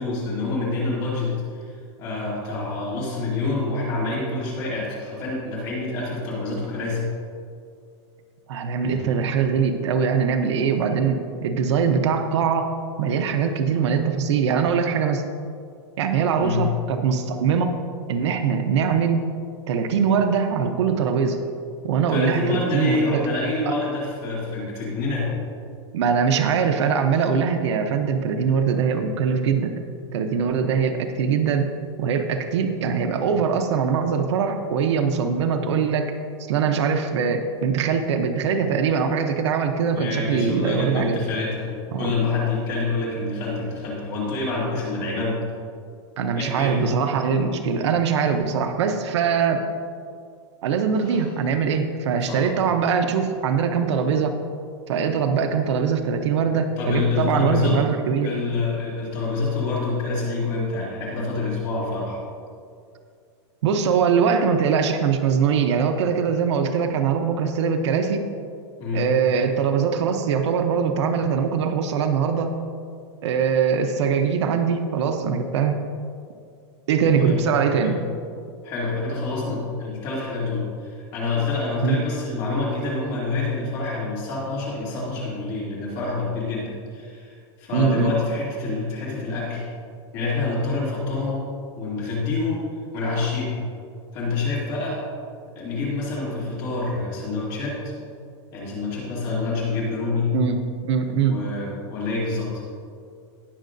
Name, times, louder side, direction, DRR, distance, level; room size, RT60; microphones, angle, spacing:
voice 1, 0.0-1.7 2.0-7.0 8.8-9.2 16.4-16.7 22.1-25.3 39.9-45.4 46.4-46.8 51.0-51.3 52.3-52.4 56.8-57.8 58.2-62.2 68.8-69.0 77.0-77.4 77.8-78.0 78.6-89.6 90.1-91.4 91.8-92.6 92.9-93.6 94.1-95.0 95.5-97.9 98.5-100.3 101.2-102.5, left 3 dB, 30° left, -6 dB, 2.6 m, -27 dB
voice 2, 8.5-12.7 13.0-15.2 16.0-17.8 18.1-19.2 19.7-21.4 21.8-23.2 23.7-23.8 25.9-29.7 30.1-31.7 32.0-36.1 36.5-41.2 41.9-42.1 46.2-49.6 50.6-54.4 54.9-58.3 63.6-68.2 68.9-72.5 73.2-75.8 76.9-78.0 81.8-82.0 87.7-88.1 100.3-101.4, right 6 dB, 70° right, 6 dB, 0.8 m, -22 dB
18.5 x 6.5 x 2.6 m, 2.3 s
supercardioid pair, 180°, 15 cm